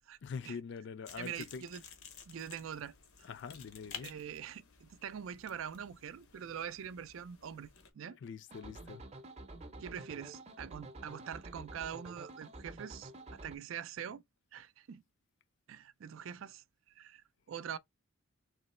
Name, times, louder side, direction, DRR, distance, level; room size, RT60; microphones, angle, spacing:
voice 1, 0.2-1.7 3.2-4.1 8.2-9.0, left 5 dB, 55° left, 0.4 m, -44 dB
sound 1, 1.1-7.9, left 7 dB, 90° left, 0.9 m, -53 dB
voice 2, 1.2-1.8 2.3-3.3 4.0-8.2 9.8-14.2 14.5-15.0 15.7-17.8, right 8 dB, 70° right, 0.4 m, -44 dB
sound 2, 8.5-13.6, right 2 dB, 30° right, 0.6 m, -49 dB
3.8 x 3.0 x 4.2 m
head